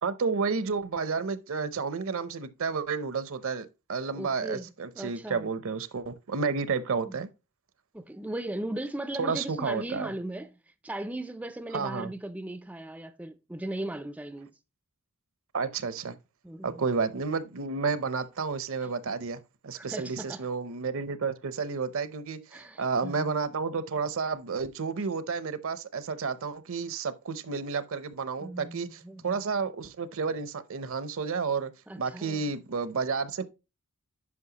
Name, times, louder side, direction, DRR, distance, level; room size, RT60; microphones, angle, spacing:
voice 1, 0.0-7.3 9.2-10.1 11.7-12.1 15.5-16.2 16.6-31.7 32.0-33.4, right 5 dB, 65° right, 0.7 m, -31 dB
voice 2, 4.1-5.5 7.1-7.2 7.9-10.5 10.8-14.5 16.4-16.8 18.8-18.9 19.8-20.5 22.5-23.3 28.4-29.4 31.9-32.4, right 1 dB, 5° right, 0.4 m, -38 dB
9.6 x 5.4 x 2.9 m
head